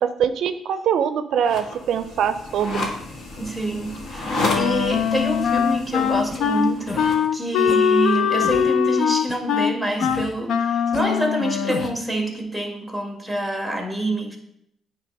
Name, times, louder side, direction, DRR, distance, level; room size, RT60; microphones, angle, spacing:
voice 1, 0.0-2.9, right 8 dB, 75° right, 11 dB, 0.4 m, -23 dB
sound 1, 1.4-7.3, left 2 dB, 60° left, 1.7 m, -31 dB
voice 2, 3.4-14.4, right 1 dB, 5° left, 3 dB, 1.6 m, -26 dB
Wind instrument woodwind instrument, 4.4-12.0, left 8 dB, 80° left, 0.5 m, -21 dB
sound 2, 6.3-6.4 6.9-7.2 7.7-7.8 8.4-8.7 9.3-9.4 10.0-10.4 10.9-11.0 11.7-12.0, left 2 dB, 35° left, 0.8 m, -33 dB
9.0 x 3.2 x 5.2 m, 0.73 s
cardioid pair, 90°, 0 cm